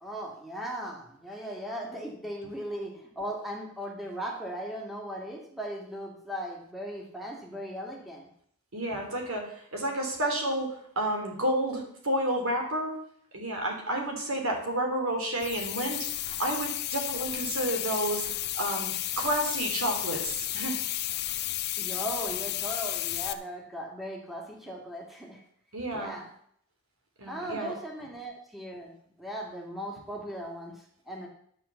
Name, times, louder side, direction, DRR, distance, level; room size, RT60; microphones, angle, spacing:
voice 1, 0.0-8.3 21.8-25.4 25.9-26.3 27.2-28.9 29.2-31.3, equal, ahead, -1 dB, 2.2 m, -38 dB
voice 2, 8.7-13.0 13.3-16.1 16.4-18.2 18.6-20.7 25.7-26.1 27.2-27.7, right 1 dB, 85° right, 1 dB, 3.4 m, -30 dB
sound 1, 15.4-23.3, left 14 dB, 50° left, 0.6 m, -33 dB
11.0 x 6.7 x 7.0 m, 0.66 s
head